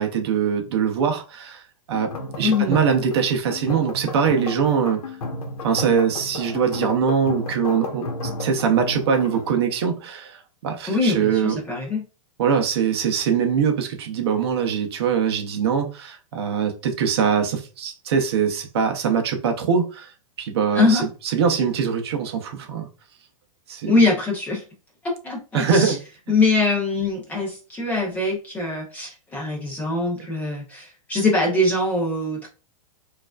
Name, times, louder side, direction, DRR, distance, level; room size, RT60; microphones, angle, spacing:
voice 1, 0.0-1.6 1.9-2.1 2.4-5.0 5.6-8.1 8.4-11.6 12.4-20.1 20.4-22.9 23.7-24.0 25.5-26.0, right 7 dB, 45° right, 0.6 m, -22 dB
sound 1, 1.9-9.5, left 2 dB, 85° left, 1.0 m, -32 dB
voice 2, 2.4-2.8 10.9-12.0 20.7-21.1 23.8-24.6 25.0-26.0 26.3-32.5, left 2 dB, 10° left, 0.6 m, -22 dB
4.5 x 2.5 x 2.3 m
supercardioid pair, 175°, 18 cm